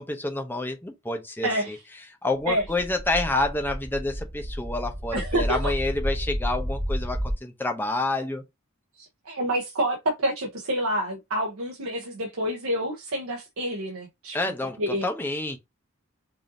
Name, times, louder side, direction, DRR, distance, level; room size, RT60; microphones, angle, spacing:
voice 1, 0.0-1.8 2.2-8.4 14.3-15.6, left 2 dB, 10° left, 0.6 m, -28 dB
voice 2, 1.4-1.8 2.5-2.6 5.1-5.7 9.0-14.4 14.8-15.1, right 1 dB, 75° right, 0.9 m, -28 dB
sound 1, 2.6-7.3, equal, 30° right, 1.2 m, -31 dB
5.1 x 2.6 x 2.7 m
head